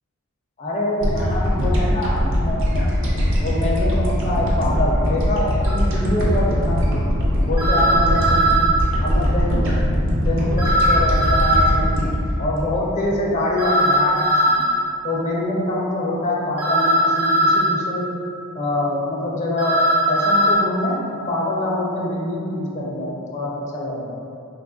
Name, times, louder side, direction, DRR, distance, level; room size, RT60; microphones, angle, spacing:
voice 1, 0.6-2.9 3.4-7.0 7.4-8.5 9.0-9.8 10.3-12.1 12.4-14.6 15.0-18.1 18.5-24.1, left 1 dB, 35° left, -4 dB, 0.4 m, -25 dB
sound 1, 1.0-13.5, equal, 60° right, 0.6 m, -21 dB
sound 2, 5.6-5.7 7.6-8.7 10.6-11.7 13.6-14.7 16.6-17.7 19.6-20.5, right 1 dB, 90° right, 0.9 m, -18 dB
2.9 x 2.3 x 3.7 m, 2.6 s
head